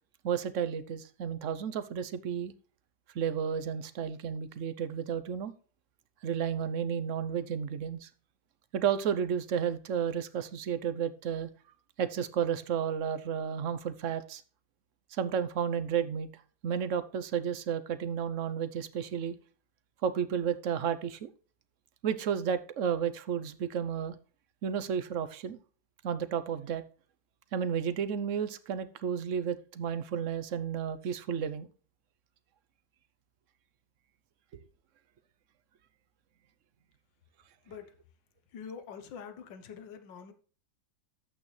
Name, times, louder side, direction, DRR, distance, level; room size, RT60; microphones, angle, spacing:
voice 1, 0.2-2.5 3.1-5.5 6.2-8.1 8.7-11.5 12.0-14.4 15.1-16.3 16.6-19.3 20.0-21.3 22.0-24.1 24.6-25.6 26.0-26.8 27.5-31.7 34.5-34.6, right 8 dB, 60° right, 0.8 m, -32 dB
voice 2, 38.5-40.3, left 6 dB, 70° left, 1.8 m, -45 dB
12.5 x 8.4 x 3.3 m
omnidirectional pair, 2.1 m